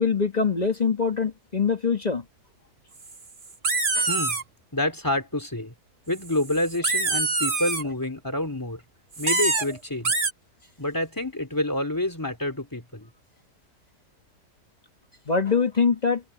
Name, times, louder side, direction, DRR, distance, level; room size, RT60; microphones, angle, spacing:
voice 1, 0.0-2.2 3.9-4.1 15.3-16.2, left 5 dB, 25° left, 1.4 m, -23 dB
sound 1, 3.1-3.2 3.4-4.4 6.2-7.8 9.1-9.7 10.0-10.3, right 3 dB, 35° right, 1.6 m, -25 dB
voice 2, 4.1-4.4 4.7-5.7 6.1-8.8 9.2-10.3 10.8-13.1, left 1 dB, 10° left, 3.3 m, -28 dB
omnidirectional pair, 1.7 m